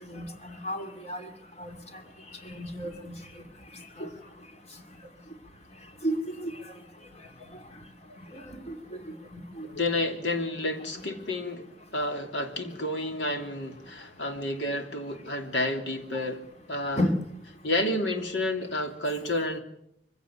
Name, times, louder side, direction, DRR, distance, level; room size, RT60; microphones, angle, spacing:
voice 1, 0.1-1.2 1.6-1.7 2.5-3.1 4.0-4.1 6.0-6.2 6.4-6.5 8.7-8.8 9.6-9.7 17.0-17.1, equal, 35° left, 2.7 m, -31 dB
voice 2, 9.6-11.6 11.9-17.0 17.6-19.6, left 1 dB, 80° left, 3.1 m, -30 dB
24.0 x 16.5 x 8.9 m
head